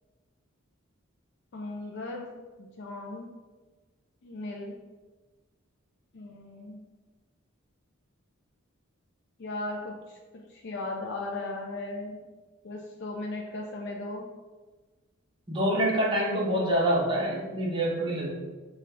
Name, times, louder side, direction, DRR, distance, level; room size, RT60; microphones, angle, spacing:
voice 1, 1.5-2.3 2.6-3.3 4.2-4.8 6.1-6.8 9.4-12.2 12.6-14.3, left 2 dB, 55° left, -1 dB, 0.4 m, -37 dB
voice 2, 15.5-18.4, right 1 dB, 25° right, -4 dB, 0.8 m, -26 dB
5.1 x 2.3 x 3.2 m, 1.3 s
head